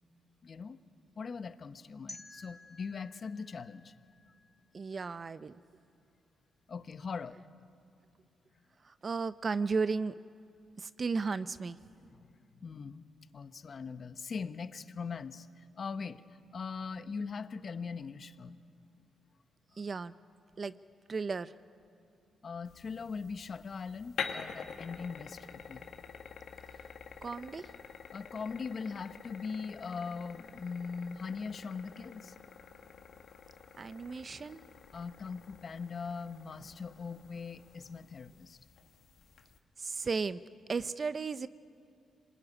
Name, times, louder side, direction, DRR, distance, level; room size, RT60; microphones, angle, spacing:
voice 1, 0.4-0.8 1.2-3.9 6.7-7.4 12.1-13.1 13.3-16.2 16.5-18.6 19.7-19.8 22.4-25.8 28.1-32.3 34.9-38.6, left 5 dB, 50° left, 12 dB, 1.0 m, -41 dB
sound 1, 2.1-5.0, left 1 dB, 5° left, 2.8 m, -53 dB
voice 2, 4.7-5.6 8.8-10.1 10.8-11.8 19.8-20.1 20.6-20.7 21.1-21.5 27.2-27.7 33.8-34.6 39.8-40.4 40.7-41.5, right 4 dB, 45° right, 14 dB, 0.7 m, -34 dB
sound 2, 22.7-39.6, left 6 dB, 70° left, 1.8 m, -47 dB
26.0 x 20.5 x 9.8 m, 2.5 s
cardioid pair, 70°, 0 cm